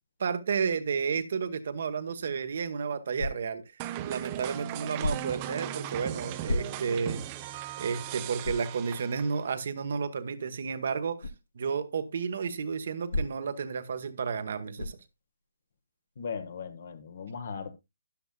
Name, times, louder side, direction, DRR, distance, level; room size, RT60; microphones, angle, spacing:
voice 1, 0.2-3.6 4.0-7.2 7.8-11.3 11.5-15.0, right 6 dB, 55° right, 1.2 m, -32 dB
sound 1, 3.1-3.7 5.0-5.5 6.4-7.1 7.6-7.7 8.4-8.8 11.2-11.4 13.1-13.6 14.8-15.1, left 2 dB, 75° left, 1.1 m, -33 dB
sound 2, 3.8-9.5, right 12 dB, 25° right, 0.7 m, -38 dB
voice 2, 16.2-17.7, left 6 dB, 55° left, 1.3 m, -38 dB
13.0 x 10.5 x 2.3 m
figure-of-eight pair, 145°, 0 cm